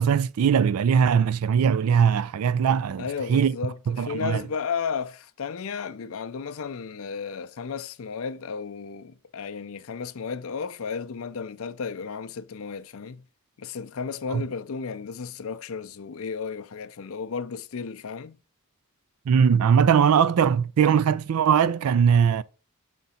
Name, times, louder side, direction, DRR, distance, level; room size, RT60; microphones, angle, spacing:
voice 1, 0.0-3.6 3.9-4.4 14.3-14.4 19.3-22.4, right 7 dB, 80° right, 0.4 m, -20 dB
voice 2, 3.0-13.2 13.6-18.4, left 5 dB, 65° left, 0.5 m, -33 dB
5.9 x 3.9 x 5.5 m
head